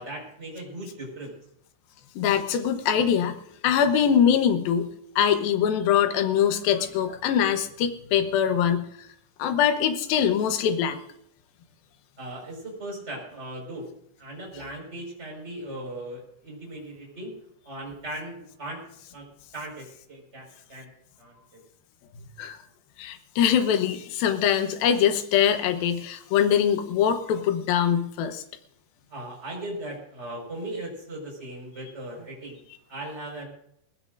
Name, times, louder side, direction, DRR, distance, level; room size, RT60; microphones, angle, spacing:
voice 1, 0.0-1.3 12.2-13.9 14.2-17.3 17.6-18.8 19.1-19.3 19.5-20.9 21.2-21.6 29.1-32.6 32.9-33.5, right 1 dB, 15° right, -1 dB, 5.3 m, -38 dB
voice 2, 2.2-3.4 3.6-4.9 5.2-9.1 9.4-11.0 22.4-22.6 23.0-28.4, left 8 dB, 70° left, 6 dB, 2.5 m, -23 dB
20.5 x 16.0 x 2.6 m, 0.72 s
omnidirectional pair, 5.3 m